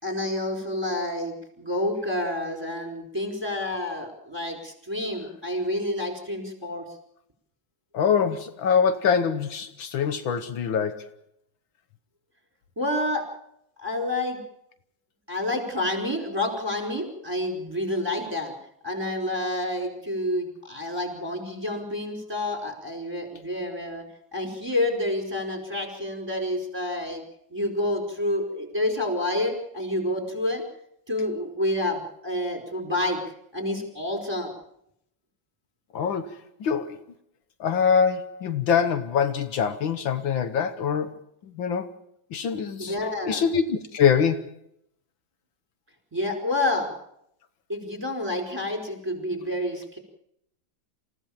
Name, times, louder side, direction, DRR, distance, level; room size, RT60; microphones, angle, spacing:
voice 1, 0.0-6.8 12.8-13.3 13.8-14.4 15.3-18.5 18.8-24.0 24.3-27.2 27.5-30.6 31.1-33.2 33.5-34.5 42.9-43.5 46.1-46.9 47.7-50.0, left 1 dB, 10° right, 4.9 m, -28 dB
voice 2, 7.9-11.1 35.9-37.0 37.6-41.1 41.6-41.9 42.3-43.0 43.3-44.5, left 7 dB, 75° left, 1.8 m, -24 dB
27.5 x 15.5 x 7.3 m
omnidirectional pair, 2.2 m